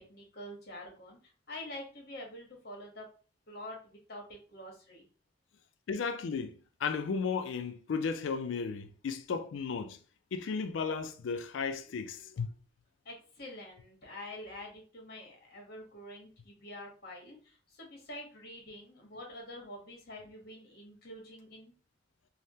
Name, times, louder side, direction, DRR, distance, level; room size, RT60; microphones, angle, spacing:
voice 1, 0.0-3.1 3.5-5.0 13.0-21.7, left 1 dB, 55° left, 1.0 m, -47 dB
voice 2, 5.9-10.0 10.3-12.5, left 5 dB, 85° left, 0.4 m, -34 dB
3.4 x 2.0 x 2.7 m
head